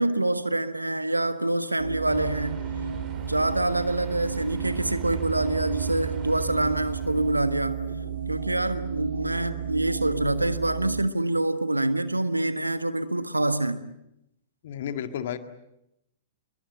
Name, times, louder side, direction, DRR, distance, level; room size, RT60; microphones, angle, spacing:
voice 1, 0.0-2.6 3.2-7.8 8.3-13.8, right 2 dB, 85° right, 1.5 m, -26 dB
sound 1, 1.8-11.0, right 7 dB, 65° right, 2.3 m, -33 dB
sound 2, 2.1-7.4, right 12 dB, 25° right, 3.8 m, -39 dB
voice 2, 14.6-15.4, left 9 dB, 55° left, 1.9 m, -32 dB
28.0 x 22.5 x 8.0 m
figure-of-eight pair, 105°, 0 cm